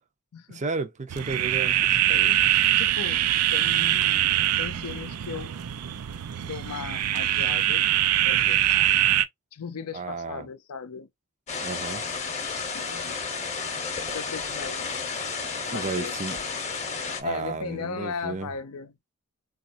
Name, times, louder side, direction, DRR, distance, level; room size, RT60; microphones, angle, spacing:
voice 1, 0.5-1.8 9.9-10.5 11.6-12.0 15.7-16.4 17.2-18.5, right 4 dB, 30° right, 0.5 m, -32 dB
sound 1, 1.1-9.3, right 12 dB, 90° right, 0.5 m, -23 dB
voice 2, 1.8-2.5 2.8-3.2 3.5-4.3 4.6-5.5 6.4-7.9 8.2-8.6 9.5-11.1 12.7-13.2 14.1-14.9 15.7-16.4 17.2-19.0, left 6 dB, 80° left, 0.5 m, -37 dB
sound 2, 11.5-17.2, left 5 dB, 30° left, 0.9 m, -32 dB
4.0 x 2.4 x 2.5 m
head